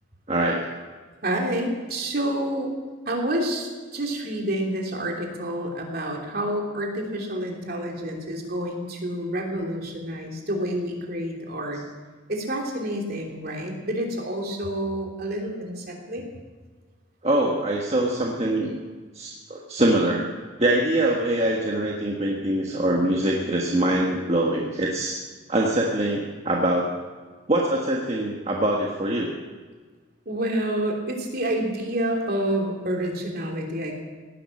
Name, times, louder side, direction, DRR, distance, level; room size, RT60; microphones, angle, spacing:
voice 1, 0.3-0.7 17.2-18.8 19.1-20.2 20.6-25.2 25.5-26.9 27.5-29.3, right 1 dB, 30° right, -1 dB, 1.4 m, -23 dB
voice 2, 1.2-2.7 3.1-11.8 12.3-16.2 30.2-34.0, right 1 dB, 50° right, 0 dB, 3.1 m, -28 dB
17.5 x 11.0 x 7.2 m, 1.4 s
head